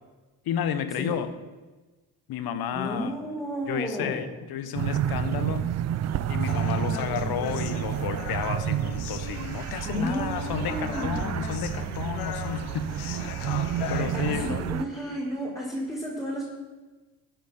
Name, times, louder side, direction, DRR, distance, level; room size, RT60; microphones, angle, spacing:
voice 1, 0.4-1.3 2.3-3.1 3.7-5.7 6.3-13.2 13.9-14.7, left 9 dB, 50° left, 11 dB, 1.2 m, -32 dB
voice 2, 2.7-4.2 9.8-11.1 14.0-16.4, equal, 5° left, -7 dB, 4.6 m, -32 dB
sound 1, 4.7-14.8, right 10 dB, 35° right, 0.6 m, -30 dB
Human voice, 6.5-14.5, left 9 dB, 70° left, 1.0 m, -39 dB
13.0 x 9.5 x 4.4 m, 1.2 s
figure-of-eight pair, 50°, 47 cm